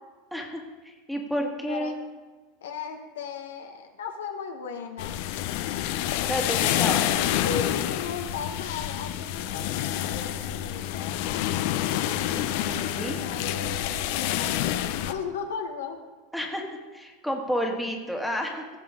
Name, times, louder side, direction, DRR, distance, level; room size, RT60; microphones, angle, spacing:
voice 1, 0.3-2.0 6.3-7.1 12.3-13.2 16.3-18.6, equal, ahead, 1 dB, 1.6 m, -31 dB
voice 2, 1.7-2.0 2.6-5.1 6.6-11.2 12.9-16.0, left 6 dB, 85° left, 4 dB, 1.1 m, -37 dB
sound 1, 5.0-15.1, left 12 dB, 65° left, 0.6 m, -28 dB
15.5 x 6.0 x 3.7 m, 1.3 s
hypercardioid pair, 110°, 0 cm